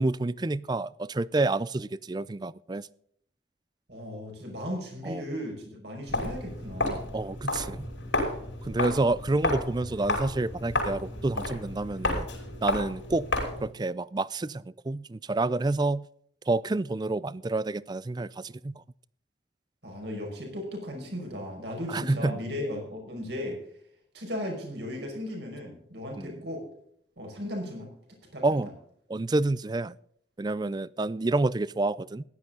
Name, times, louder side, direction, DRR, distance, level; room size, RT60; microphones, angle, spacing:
voice 1, 0.0-2.9 5.0-5.2 7.1-7.9 8.6-12.3 12.6-13.3 13.6-16.1 16.5-18.8 21.9-22.4 26.1-26.4 28.4-28.7 29.1-29.9 30.4-32.2, right 2 dB, 20° right, 20 dB, 0.4 m, -28 dB
voice 2, 3.9-7.0 19.8-23.6 24.1-26.6 27.2-27.9 28.3-28.6, left 1 dB, 65° right, 1 dB, 5.5 m, -36 dB
Walk footsteps, 6.1-13.7, left 2 dB, 85° left, 5.4 m, -32 dB
15.5 x 11.5 x 3.8 m, 0.66 s
head